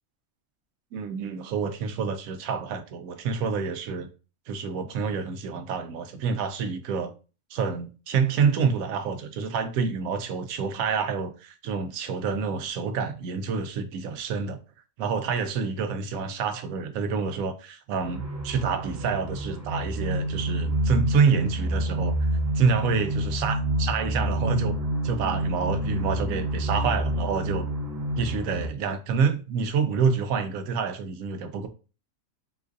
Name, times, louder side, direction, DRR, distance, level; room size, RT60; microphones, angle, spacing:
voice 1, 0.9-4.1 4.5-7.1 7.5-14.6 15.0-22.1 22.5-24.7 25.0-27.7 28.2-31.7, right 5 dB, 90° right, 1.0 m, -27 dB
sound 1, 18.0-28.7, right 1 dB, 15° right, 0.9 m, -28 dB
3.8 x 2.4 x 2.5 m
omnidirectional pair, 1.4 m